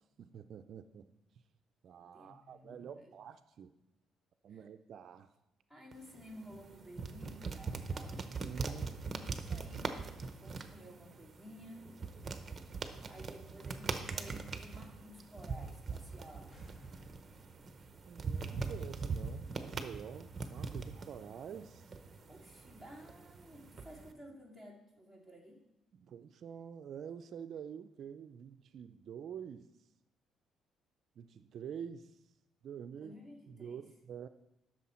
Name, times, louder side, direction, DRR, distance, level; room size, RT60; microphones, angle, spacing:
voice 1, 0.2-1.1 1.8-3.7 4.4-5.3 8.3-8.9 18.1-21.9 25.9-29.7 31.2-32.2 32.6-33.1 33.5-34.3, right 8 dB, 50° right, 9 dB, 0.4 m, -47 dB
voice 2, 2.1-3.1 4.5-4.6 5.7-10.0 10.4-11.8 13.1-16.6 22.3-25.6 32.9-33.9, equal, 15° left, -1 dB, 2.2 m, -54 dB
sound 1, 5.9-24.1, right 4 dB, 25° right, 0.8 m, -42 dB
sound 2, 16.5-20.0, equal, 40° left, 2.4 m, -63 dB
12.5 x 6.2 x 4.3 m, 0.89 s
cardioid pair, 135°, 0 cm